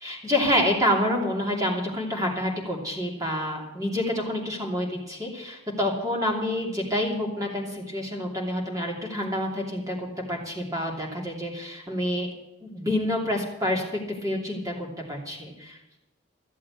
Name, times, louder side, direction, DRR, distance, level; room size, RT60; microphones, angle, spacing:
voice 1, 0.0-12.3 12.6-13.8 14.2-15.8, left 1 dB, 15° right, -1 dB, 2.8 m, -28 dB
14.5 x 7.6 x 8.7 m, 0.96 s
head